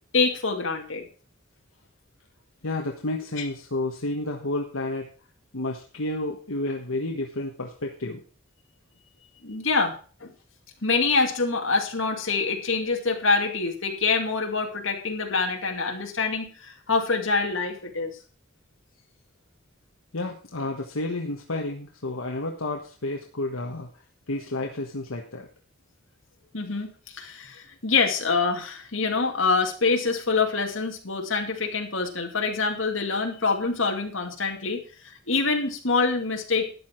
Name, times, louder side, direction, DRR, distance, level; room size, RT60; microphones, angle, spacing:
voice 1, 0.1-1.1 3.4-3.5 9.4-9.9 10.2-10.3 10.8-18.2 26.5-36.7, left 4 dB, 70° left, 3 dB, 2.4 m, -25 dB
voice 2, 2.6-5.1 5.5-8.2 20.1-23.9 24.3-25.5, left 2 dB, 85° left, 1 dB, 1.4 m, -31 dB
12.5 x 9.5 x 4.5 m, 0.39 s
head